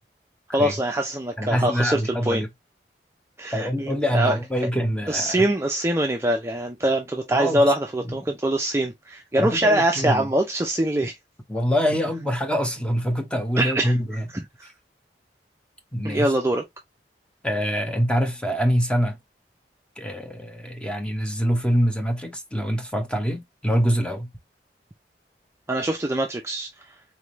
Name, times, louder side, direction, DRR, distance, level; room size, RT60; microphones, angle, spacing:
voice 1, 0.5-2.4 3.4-4.4 5.1-11.1 13.6-13.9 14.6-14.7 16.0-16.6 25.7-26.7, right 1 dB, 15° right, 0.5 m, -23 dB
voice 2, 1.4-2.5 3.5-5.5 7.3-7.7 8.0-8.2 9.4-10.3 11.5-14.3 15.9-16.3 17.4-19.2 20.0-24.3, equal, 5° left, 1.0 m, -25 dB
4.2 x 3.6 x 3.0 m
head